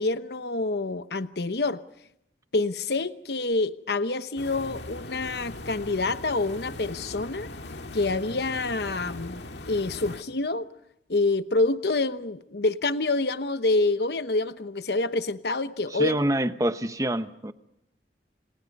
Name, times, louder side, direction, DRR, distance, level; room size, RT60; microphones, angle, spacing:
voice 1, 0.0-1.8 2.5-7.5 7.9-10.7 11.1-16.2, left 2 dB, 70° left, 12 dB, 1.0 m, -27 dB
sound 1, 4.4-10.2, left 2 dB, 85° left, 1.8 m, -40 dB
voice 2, 15.9-17.5, right 1 dB, 20° right, 10 dB, 1.0 m, -26 dB
30.0 x 26.5 x 5.4 m, 0.77 s
head